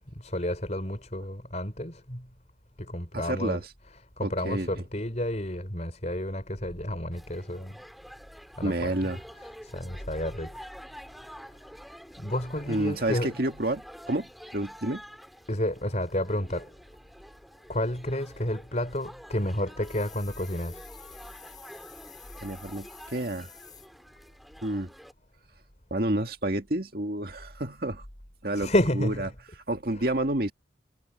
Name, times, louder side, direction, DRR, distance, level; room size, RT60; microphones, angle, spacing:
voice 1, 0.2-2.2 2.9-3.6 4.2-7.7 8.6-9.1 9.7-10.5 12.2-13.3 15.5-16.7 17.7-20.8 28.5-29.3 30.0-30.1, left 1 dB, 35° left, 5.1 m, -30 dB
voice 2, 3.1-3.6 4.2-4.7 8.6-9.2 12.7-15.0 22.4-23.5 24.6-24.9 25.9-28.0 28.4-29.3 29.7-30.5, right 1 dB, 50° right, 1.9 m, -29 dB
sound 1, 7.1-25.1, equal, ahead, 3.9 m, -48 dB
sound 2, 19.8-23.9, left 7 dB, 20° left, 6.3 m, -50 dB
head